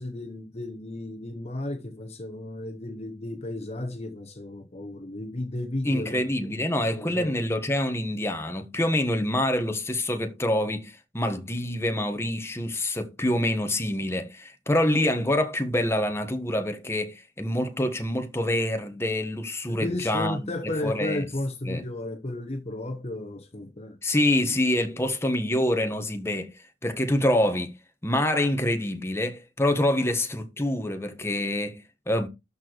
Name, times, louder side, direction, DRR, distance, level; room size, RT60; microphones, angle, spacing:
voice 1, 0.0-6.3 6.9-7.4 19.7-24.0, left 1 dB, 35° left, 1.0 m, -34 dB
voice 2, 5.8-20.4 20.6-21.2 21.7-21.8 24.0-27.7 28.0-32.3, left 1 dB, 15° left, 1.5 m, -26 dB
13.0 x 4.5 x 4.7 m
head